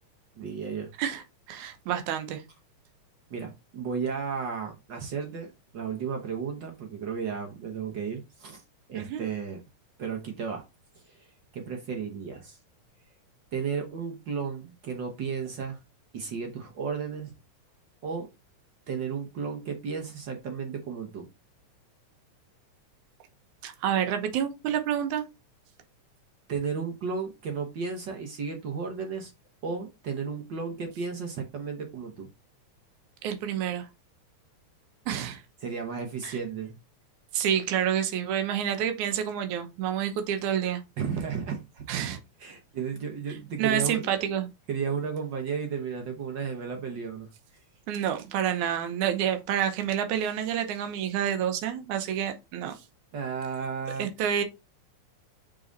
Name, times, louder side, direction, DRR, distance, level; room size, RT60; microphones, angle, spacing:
voice 1, 0.4-0.9 3.3-8.6 8.9-9.6 10.0-10.6 11.0-12.6 13.5-15.8 16.1-17.3 18.0-18.3 18.9-21.3 26.5-29.3 29.6-32.3 35.6-36.8 41.0-41.8 42.4-44.2 44.7-47.3 53.1-54.1, right 6 dB, 65° right, 1.1 m, -33 dB
voice 2, 1.0-2.4 8.9-9.2 23.6-25.3 33.2-33.9 35.1-35.4 36.2-36.4 37.3-40.8 41.9-42.2 43.6-44.5 47.9-52.8 54.0-54.4, right 9 dB, 80° right, 2.4 m, -28 dB
6.9 x 3.9 x 3.9 m
omnidirectional pair, 3.4 m